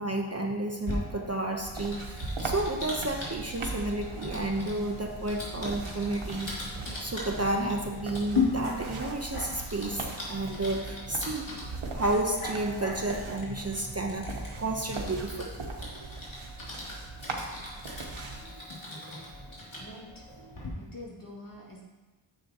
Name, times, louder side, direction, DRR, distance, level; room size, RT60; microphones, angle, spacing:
voice 1, 0.0-6.7 7.0-11.5 11.9-15.9 18.3-18.7 18.9-19.3 19.7-19.8 20.3-20.6, right 2 dB, 30° right, 2 dB, 0.9 m, -32 dB
Typing, 0.8-20.7, left 3 dB, 70° left, 2.9 m, -39 dB
sound 1, 1.6-18.5, right 2 dB, 75° right, 1.3 m, -40 dB
voice 2, 19.7-20.3 20.8-21.8, left 2 dB, 40° left, -5 dB, 2.5 m, -46 dB
10.0 x 7.8 x 3.0 m, 1.2 s
cardioid pair, 50°, 49 cm